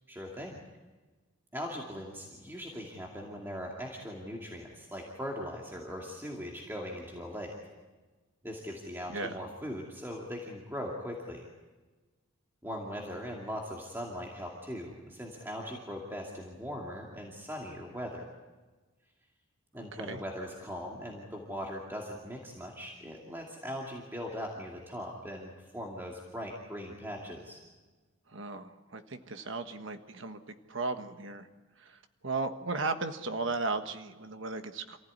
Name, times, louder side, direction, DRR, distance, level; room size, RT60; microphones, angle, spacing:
voice 1, 0.1-0.6 1.5-7.6 8.4-11.4 12.6-18.3 19.7-27.7, equal, 10° right, -1 dB, 2.5 m, -40 dB
voice 2, 9.1-9.4 19.9-20.2 28.3-31.5 31.8-35.0, right 3 dB, 60° right, 7 dB, 1.4 m, -36 dB
27.5 x 15.5 x 9.6 m, 1.3 s
head